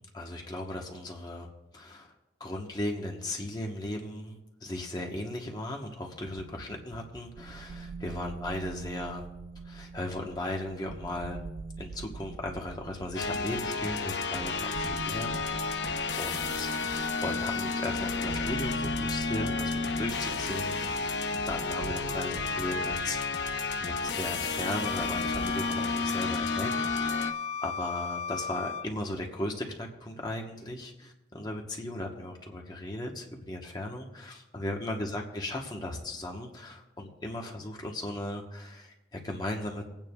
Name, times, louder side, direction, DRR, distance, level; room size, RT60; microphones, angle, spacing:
voice 1, 0.0-1.5 1.7-2.1 2.4-9.3 9.6-11.4 11.8-23.5 23.8-27.3 27.6-39.9, left 1 dB, 25° left, 1 dB, 1.1 m, -37 dB
sound 1, 6.2-25.6, right 4 dB, 55° right, 0.3 m, -43 dB
sound 2, 13.1-27.3, left 4 dB, 85° left, 0.7 m, -31 dB
Wind instrument woodwind instrument, 24.8-28.9, left 6 dB, 40° left, 0.3 m, -36 dB
26.5 x 9.0 x 2.4 m, 0.96 s
head